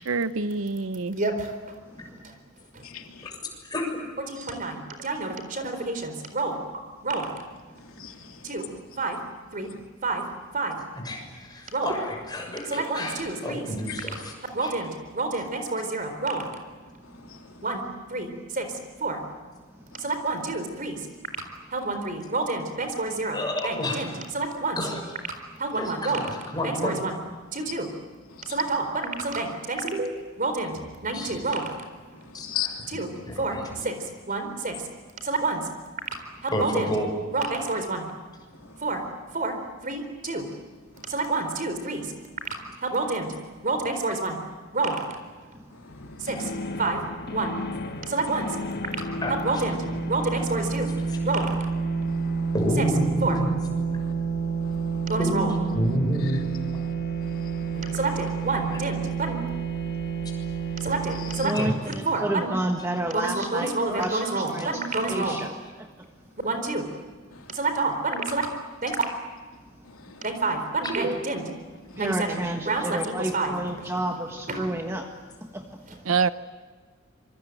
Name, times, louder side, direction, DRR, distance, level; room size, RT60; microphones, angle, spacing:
voice 1, 0.1-1.2 76.1-76.3, right 4 dB, 75° right, 13 dB, 0.9 m, -25 dB
voice 2, 1.1-1.5 4.3-6.5 7.0-7.3 8.4-8.6 9.0-9.2 9.5-9.7 10.0-10.2 10.5-10.7 11.7-11.9 12.7-13.7 14.5-16.4 17.6-17.8 18.1-18.6 19.0-19.2 20.0-21.0 21.7-23.4 23.6-24.8 25.6-26.3 26.6-27.2 27.5-27.9 28.5-31.6 32.9-33.1 33.4-33.6 33.8-33.9 34.3-34.7 35.2-35.6 36.6-36.9 37.3-38.0 38.8-39.0 39.3-39.5 39.8-40.5 41.1-42.1 42.9-43.3 43.6-44.4 44.7-45.0 46.2-46.5 46.8-47.0 47.3-47.5 48.1-48.5 49.4-49.8 50.1-50.9 51.2-51.5 53.2-53.4 55.1-55.5 57.7-59.0 59.3-59.4 60.8-61.7 62.1-62.5 63.1-65.4 66.4-66.8 67.5-68.4 68.8-69.0 70.2-71.5 72.0-73.5 74.5-74.7, right 3 dB, 40° right, 7 dB, 4.1 m, -28 dB
voice 3, 2.8-3.3 7.8-9.0 9.6-9.8 13.9-14.0 17.1-17.6 19.9-20.1 28.3-28.6 32.1-32.8 38.6-38.9 40.9-41.2 45.7-46.3 52.1-52.5 54.0-54.1 54.6-55.1 56.2-56.3 56.8-56.9 57.2-58.0 61.1-61.5 66.4-66.5 67.3-67.6 69.8-70.3 71.9-72.0, left 10 dB, 85° left, 3 dB, 3.1 m, -40 dB
voice 4, 10.9-14.3 14.6-14.7 23.3-24.1 24.8-25.0 25.7-27.0 31.0-31.5 32.3-33.0 33.3-33.9 36.5-37.1 49.2-49.6 51.1-51.2 52.5-53.6 55.2-56.4 58.7-58.8 61.5-61.7 70.8-70.9 73.5-73.6, left 1 dB, 20° left, 1 dB, 6.7 m, -30 dB
sound 1, 45.9-61.5, right 4 dB, 50° left, 1.6 m, -30 dB
voice 5, 61.4-65.5 72.0-75.1 75.5-75.6, right 1 dB, 15° right, 3 dB, 1.5 m, -30 dB
26.5 x 24.0 x 9.1 m, 1.4 s
head